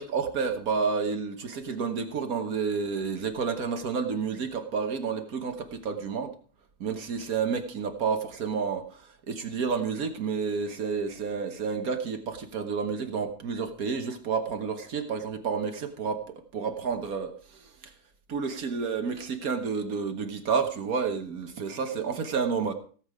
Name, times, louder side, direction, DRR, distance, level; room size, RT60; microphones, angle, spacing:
voice 1, 0.0-6.3 6.8-17.9 18.3-22.7, right 5 dB, 65° right, 7 dB, 1.7 m, -30 dB
17.0 x 7.5 x 4.9 m, 0.42 s
omnidirectional pair, 1.6 m